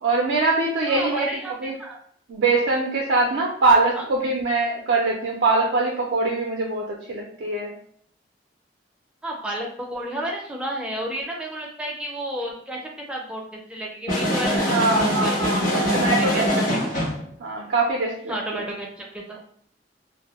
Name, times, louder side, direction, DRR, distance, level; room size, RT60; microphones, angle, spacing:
voice 1, 0.0-1.3 1.6-1.8 2.3-7.7 14.5-16.7 17.4-18.6, right 3 dB, 75° right, -2 dB, 0.4 m, -23 dB
voice 2, 0.9-1.5 1.8-2.0 4.0-4.1 9.2-12.8 13.1-15.6 16.3-16.8 18.3-19.4, right 1 dB, 5° right, -1 dB, 0.4 m, -32 dB
sound 1, 14.1-17.2, equal, 45° left, 0.8 m, -23 dB
2.1 x 2.0 x 2.9 m, 0.63 s
head